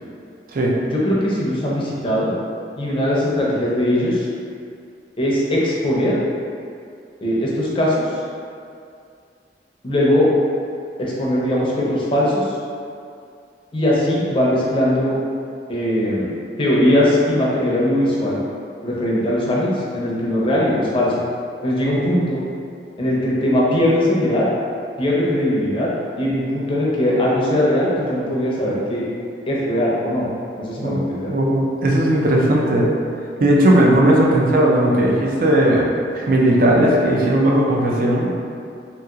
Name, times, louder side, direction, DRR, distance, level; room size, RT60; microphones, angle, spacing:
voice 1, 0.8-2.3 2.8-4.3 5.2-6.2 7.2-8.2 9.8-10.3 11.0-12.6 13.7-15.2 15.7-16.3 16.6-18.4 18.8-21.1 21.6-22.4 23.0-24.5 25.0-25.9 26.1-29.0 29.5-30.3 30.6-31.3, left 1 dB, 30° left, -5 dB, 0.5 m, -20 dB
voice 2, 30.8-32.9 33.4-35.8 36.1-38.3, right 1 dB, 50° right, -2 dB, 0.4 m, -16 dB
2.8 x 2.8 x 2.4 m, 2.4 s
head